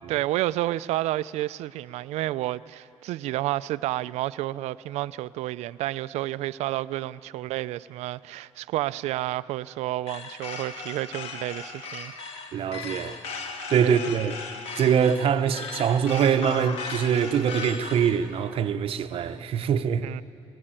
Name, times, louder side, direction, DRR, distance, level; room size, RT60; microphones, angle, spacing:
voice 1, 0.1-12.1 13.8-14.1 20.0-20.2, right 15 dB, 85° right, 0.4 m, -30 dB
sound 1, 10.1-18.2, left 4 dB, 65° left, 1.8 m, -37 dB
voice 2, 12.5-13.2 13.7-14.4 14.8-20.0, right 8 dB, 55° right, 0.9 m, -23 dB
19.5 x 17.5 x 9.0 m
cardioid pair, 110°, 11 cm